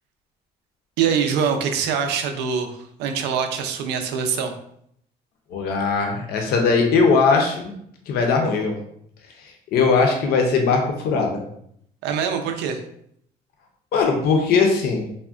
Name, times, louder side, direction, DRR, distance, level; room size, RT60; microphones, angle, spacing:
voice 1, 1.0-4.5 12.0-12.8, right 7 dB, 85° right, 5 dB, 0.4 m, -24 dB
voice 2, 5.5-7.6 8.1-8.7 9.7-11.4 13.9-15.0, left 4 dB, 70° left, 3 dB, 0.5 m, -19 dB
3.4 x 2.1 x 2.4 m, 0.71 s
cardioid pair, 110°, 17 cm